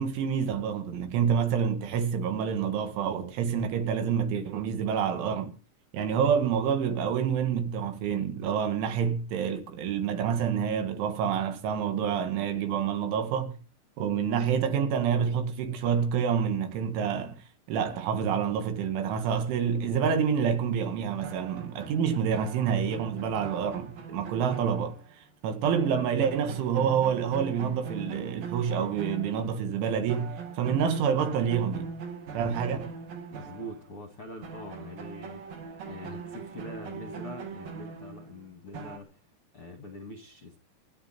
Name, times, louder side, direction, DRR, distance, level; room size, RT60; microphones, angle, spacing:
voice 1, 0.0-5.5 5.9-13.5 14.0-17.4 17.7-25.0 25.4-31.9 32.3-32.9, right 7 dB, 75° right, 4.2 m, -28 dB
sound 1, 21.2-25.4 25.6-29.8 30.1-34.2 34.4-39.0, right 5 dB, 50° right, 3.7 m, -41 dB
voice 2, 33.3-35.4 35.8-39.2 39.5-40.6, left 1 dB, 55° left, 1.6 m, -43 dB
27.0 x 11.0 x 4.5 m
omnidirectional pair, 5.6 m